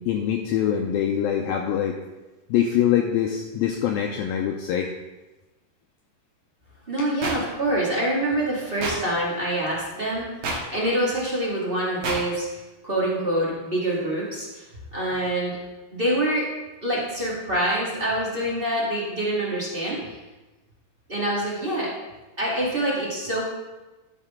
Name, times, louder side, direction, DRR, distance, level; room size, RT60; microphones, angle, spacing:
voice 1, 0.0-2.0 2.5-4.9, left 9 dB, 85° left, 2 dB, 2.1 m, -24 dB
voice 2, 6.9-14.6 14.9-15.6 15.9-16.5 16.8-20.2 21.1-21.9 22.4-23.4, right 1 dB, 30° right, -6 dB, 1.0 m, -26 dB
sound 1, 7.2-7.4 8.8-8.9 10.4-10.6 12.0-12.2, right 2 dB, 50° right, 2.1 m, -27 dB
12.5 x 6.7 x 3.7 m, 1.1 s
omnidirectional pair, 4.8 m